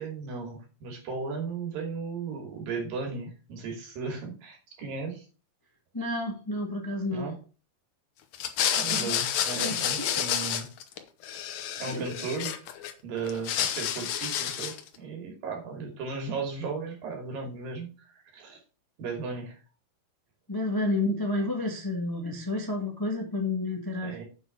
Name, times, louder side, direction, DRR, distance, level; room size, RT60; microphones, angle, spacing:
voice 1, 0.0-5.3 7.1-7.4 8.7-10.7 11.8-12.6 13.0-17.9 18.3-18.6 19.0-19.6 24.0-24.2, right 4 dB, 75° right, 2 dB, 4.2 m, -35 dB
voice 2, 5.9-7.3 9.0-9.1 9.6-10.3 11.9-12.1 20.5-24.1, left 2 dB, 30° left, 2 dB, 0.3 m, -30 dB
sound 1, 8.3-11.0 11.2-12.9 13.3-14.9, left 10 dB, 70° left, 1.9 m, -29 dB
7.8 x 6.3 x 5.6 m, 0.36 s
omnidirectional pair, 4.0 m